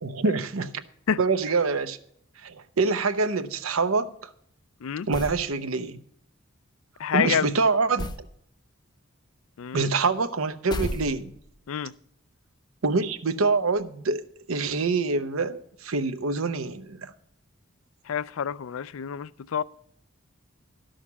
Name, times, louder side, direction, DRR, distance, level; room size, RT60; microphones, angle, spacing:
voice 1, 0.0-0.7 1.2-2.0 2.4-4.1 5.1-6.0 7.1-8.1 9.7-11.3 12.8-14.2 14.5-17.1, right 4 dB, 85° right, 0.8 m, -25 dB
sound 1, 5.1-5.5 8.0-8.3 10.7-11.5, left 1 dB, 20° left, 0.6 m, -33 dB
voice 2, 7.0-7.5 9.6-9.9 11.7-11.9 18.1-19.6, left 7 dB, 80° left, 0.4 m, -28 dB
12.5 x 6.4 x 7.1 m
head